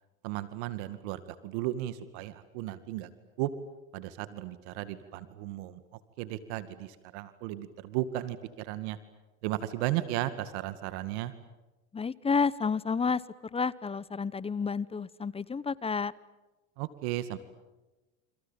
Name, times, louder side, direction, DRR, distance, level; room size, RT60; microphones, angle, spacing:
voice 1, 0.2-3.1 3.4-3.5 3.9-5.8 6.2-9.0 9.4-11.3 16.8-17.4, right 14 dB, 75° right, 12 dB, 2.2 m, -35 dB
voice 2, 11.9-16.1, left 5 dB, 15° left, 19 dB, 1.0 m, -30 dB
29.5 x 27.0 x 7.4 m, 1.1 s
supercardioid pair, 105°, 34 cm